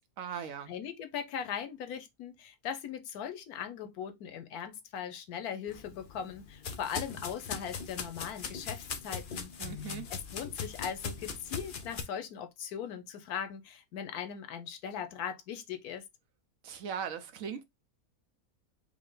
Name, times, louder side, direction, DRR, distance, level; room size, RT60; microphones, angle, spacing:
voice 1, 0.2-0.7 9.6-10.1 16.6-17.6, right 7 dB, 65° right, 1.0 m, -39 dB
voice 2, 0.7-9.5 9.8-16.0, left 8 dB, 85° left, 1.2 m, -39 dB
sound 1, 5.7-12.0, left 5 dB, 50° left, 0.6 m, -40 dB
4.9 x 2.1 x 3.7 m
omnidirectional pair, 1.6 m